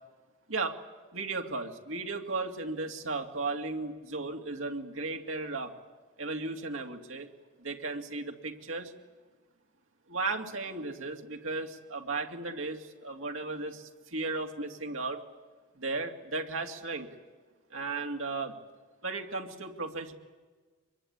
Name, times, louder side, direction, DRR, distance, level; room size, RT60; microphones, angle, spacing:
voice 1, 1.1-5.7 6.2-7.3 7.6-8.9 10.1-15.2 15.8-17.1 17.7-18.6 19.0-20.1, right 3 dB, 90° right, 3 dB, 2.5 m, -35 dB
24.5 x 22.0 x 9.6 m, 1.4 s
head